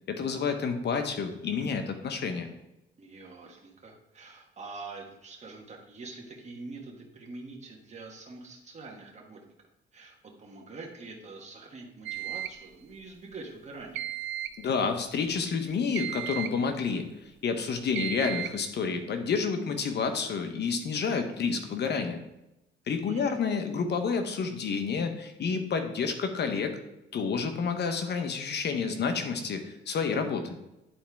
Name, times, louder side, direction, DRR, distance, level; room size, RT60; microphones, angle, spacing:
voice 1, 0.1-2.5 14.6-17.1 17.4-22.2 22.9-26.8 27.1-30.6, left 5 dB, 60° left, 6 dB, 1.1 m, -29 dB
voice 2, 3.0-9.5 9.9-14.1 23.0-23.4, right 3 dB, 35° right, -1 dB, 1.6 m, -45 dB
sound 1, 12.1-12.6 14.0-14.6 16.0-16.6 18.0-18.6, right 12 dB, 70° right, 0.4 m, -35 dB
10.0 x 4.3 x 3.5 m, 0.91 s
cardioid pair, 90°, 20 cm